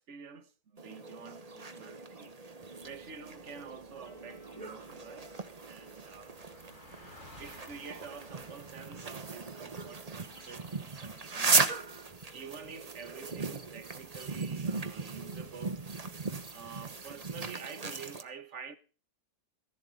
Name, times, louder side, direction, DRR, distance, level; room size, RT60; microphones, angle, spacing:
voice 1, 0.0-2.3 2.8-5.3 5.7-6.3 7.4-11.8 12.3-15.9 16.5-18.8, right 6 dB, 50° right, 1.3 m, -48 dB
sound 1, 0.8-18.2, right 4 dB, 25° right, 1.0 m, -37 dB
sound 2, 2.8-17.4, equal, 80° left, 4.3 m, -63 dB
Car passing by, 4.1-10.9, left 2 dB, 40° left, 3.6 m, -57 dB
15.0 x 11.5 x 3.8 m
omnidirectional pair, 1.8 m